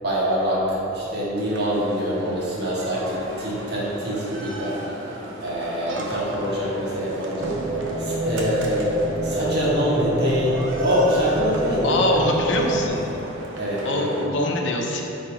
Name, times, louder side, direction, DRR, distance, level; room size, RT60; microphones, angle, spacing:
voice 1, 0.0-4.8 5.4-7.6 8.0-12.0 13.6-14.2, equal, 55° right, -7 dB, 1.4 m, -24 dB
sound 1, 1.4-14.3, right 1 dB, 80° right, 0.7 m, -37 dB
sound 2, 7.4-12.9, right 2 dB, 20° right, 0.6 m, -27 dB
voice 2, 11.8-13.1 13.8-15.0, left 2 dB, 70° left, 1 dB, 0.7 m, -23 dB
4.6 x 4.2 x 4.9 m, 2.9 s
head